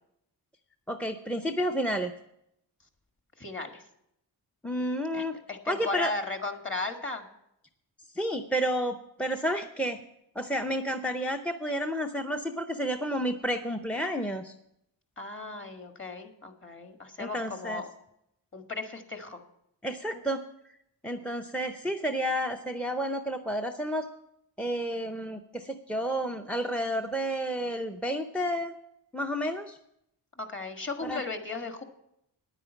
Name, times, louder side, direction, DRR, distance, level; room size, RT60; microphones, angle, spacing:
voice 1, 0.9-2.1 4.6-5.3 5.7-6.1 8.1-10.0 10.4-14.5 17.2-17.8 19.8-20.4 21.0-24.1 24.6-28.8 29.1-29.8 31.0-31.2, equal, 5° left, 8 dB, 0.6 m, -31 dB
voice 2, 3.4-3.8 5.1-5.2 5.5-7.3 15.2-17.9 18.5-19.4 30.4-31.8, left 3 dB, 30° left, 5 dB, 1.7 m, -36 dB
9.9 x 9.0 x 7.0 m, 0.79 s
cardioid pair, 95°, 43 cm